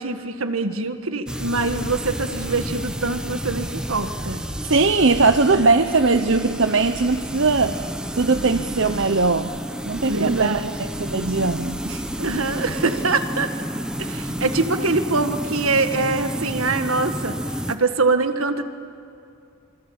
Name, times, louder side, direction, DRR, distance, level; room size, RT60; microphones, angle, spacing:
voice 1, 0.0-4.4 5.5-5.7 10.1-10.7 12.2-13.5 14.0-17.4 17.7-18.6, right 3 dB, 75° right, 8 dB, 1.7 m, -24 dB
sound 1, 1.3-17.7, equal, 5° right, 0.9 m, -30 dB
voice 2, 4.6-7.8 8.1-9.5 9.8-10.6 11.0-12.0, right 3 dB, 60° right, 8 dB, 0.8 m, -19 dB
27.5 x 24.0 x 8.8 m, 2.5 s
head